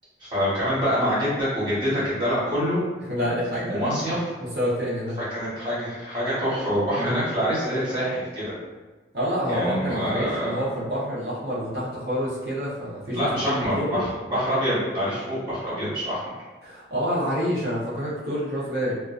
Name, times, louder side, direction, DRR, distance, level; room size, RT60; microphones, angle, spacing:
voice 1, 0.2-2.8 3.7-4.3 5.3-8.5 9.5-10.6 13.0-16.2, equal, 25° right, -11 dB, 1.2 m, -25 dB
voice 2, 3.1-3.9 4.4-5.2 7.0-7.2 9.1-14.0 16.6-18.9, equal, 55° right, -8 dB, 0.6 m, -28 dB
2.4 x 2.2 x 2.3 m, 1.2 s
head